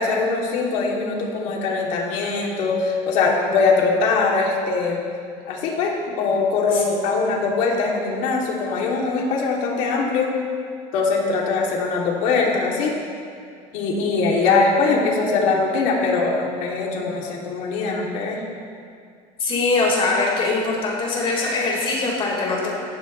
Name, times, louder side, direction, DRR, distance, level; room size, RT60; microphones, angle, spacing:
voice 1, 0.0-5.0 5.5-10.3 10.9-12.9 13.7-18.4, left 4 dB, 70° left, -2 dB, 2.9 m, -22 dB
voice 2, 19.4-22.8, left 3 dB, 40° left, -3 dB, 4.6 m, -22 dB
20.0 x 15.0 x 3.3 m, 2.2 s
cardioid pair, 135°, 14 cm